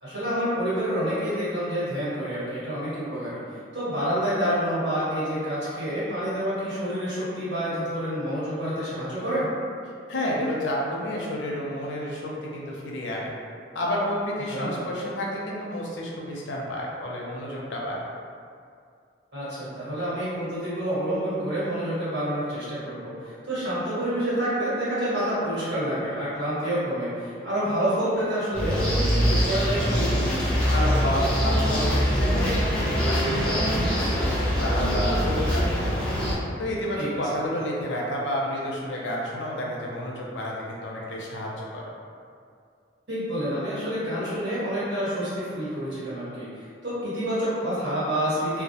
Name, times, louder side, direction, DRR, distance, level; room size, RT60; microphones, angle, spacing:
voice 1, 0.0-3.4 3.7-9.5 14.5-14.8 19.3-23.1 23.4-30.0 36.9-37.1 43.1-48.6, equal, 75° right, -12 dB, 1.3 m, -28 dB
voice 2, 10.1-13.3 13.7-18.1 30.7-35.9 36.6-41.8, left 1 dB, 85° left, -3 dB, 0.5 m, -30 dB
sound 1, 28.5-36.3, equal, 5° left, 0.3 m, -23 dB
2.2 x 2.0 x 2.7 m, 2.3 s
head